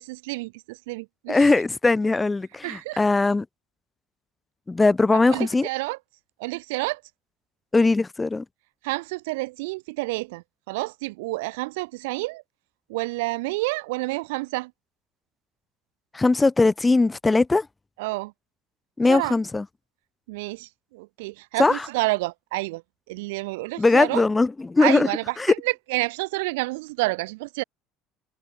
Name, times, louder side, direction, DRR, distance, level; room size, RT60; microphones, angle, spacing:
voice 1, 0.0-1.5 2.6-3.0 5.1-6.0 6.4-7.0 8.8-12.4 12.9-14.7 18.0-18.3 19.1-19.4 20.3-22.8 23.1-24.2 24.8-27.6, right 23 dB, 90° right, 6.3 m, -29 dB
voice 2, 1.3-3.4 4.7-5.7 7.7-8.4 16.1-17.7 19.0-19.6 21.6-21.8 23.8-25.1 25.4-25.5, left 3 dB, 15° left, 1.2 m, -20 dB
supercardioid pair, 100°, 0 cm